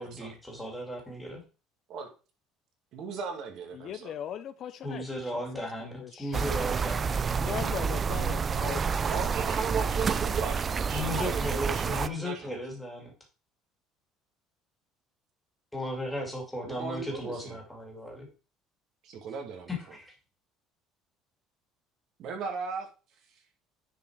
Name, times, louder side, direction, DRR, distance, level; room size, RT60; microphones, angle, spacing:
voice 1, 0.0-1.4 4.8-7.2 10.9-13.1 15.7-18.3 19.7-20.1, left 1 dB, 5° left, 2.4 m, -36 dB
voice 2, 2.9-4.1 8.6-8.7 9.0-11.5 11.7-12.6 16.6-17.6 19.0-19.7 22.2-22.9, right 5 dB, 50° right, 2.0 m, -36 dB
voice 3, 3.7-6.4 7.4-9.0, left 9 dB, 40° left, 0.5 m, -39 dB
sound 1, 6.3-12.1, right 6 dB, 25° right, 0.3 m, -29 dB
10.0 x 4.7 x 4.7 m
cardioid pair, 165°, 0 cm